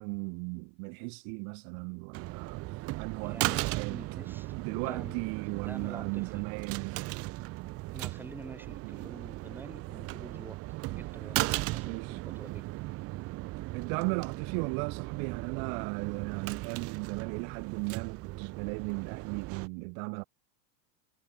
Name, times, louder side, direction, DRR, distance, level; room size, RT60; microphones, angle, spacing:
voice 1, 0.0-4.0 4.6-7.0 8.8-9.0 11.8-12.2 13.7-20.2, right 40 dB or more, 45° right, 3.0 m, -36 dB
sound 1, 2.1-19.7, right 20 dB, 30° right, 1.0 m, -37 dB
voice 2, 3.2-5.2 5.5-6.5 7.9-10.6 11.0-12.7, right 2 dB, 5° right, 4.6 m, -48 dB
supercardioid pair, 160°, 48 cm